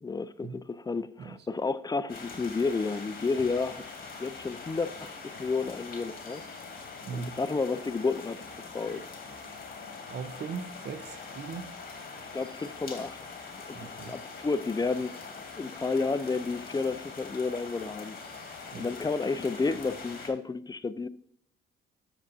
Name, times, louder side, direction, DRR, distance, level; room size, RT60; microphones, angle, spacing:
voice 1, 0.0-3.9 4.2-6.4 7.1-8.4 8.7-9.1 12.2-13.2 13.5-15.1 15.6-18.2 18.8-21.1, left 4 dB, 20° left, 0.5 m, -31 dB
sound 1, 2.1-20.3, left 4 dB, 50° left, 3.0 m, -43 dB
voice 2, 7.0-7.4 10.1-11.7 13.7-14.1 18.7-18.9, right 6 dB, 60° right, 0.9 m, -39 dB
10.0 x 7.3 x 2.7 m
cardioid pair, 90°, 20 cm